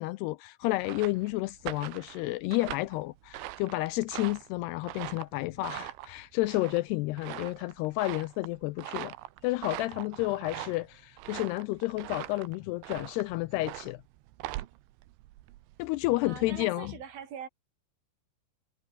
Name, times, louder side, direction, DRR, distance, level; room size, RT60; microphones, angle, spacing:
voice 1, 0.0-9.1 9.4-14.0 15.8-16.9, left 20 dB, 85° left, 2.4 m, -31 dB
sound 1, 0.6-15.9, right 16 dB, 85° right, 3.5 m, -42 dB
voice 2, 16.2-17.5, right 8 dB, 55° right, 5.6 m, -42 dB
omnidirectional pair, 5.2 m